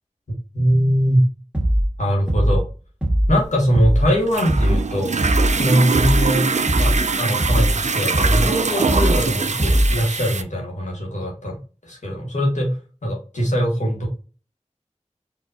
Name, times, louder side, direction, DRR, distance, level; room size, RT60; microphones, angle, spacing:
voice 1, 0.5-1.3 2.0-2.6 3.3-5.1 5.6-6.4 6.7-11.6 11.8-12.7 13.0-14.1, equal, 80° left, -1 dB, 1.5 m, -21 dB
sound 1, 1.5-1.9 2.3-2.7 3.0-3.4 3.7-4.1 4.5-4.8 5.2-5.6 5.9-6.3 6.7-7.0 7.4-7.8 8.1-8.5 8.9-9.2 9.6-10.0, equal, 10° right, 1.6 m, -19 dB
sound 2, 3.4-10.4, right 4 dB, 70° right, 0.4 m, -23 dB
4.4 x 2.8 x 2.7 m, 0.35 s
wide cardioid pair, 55°, 12 cm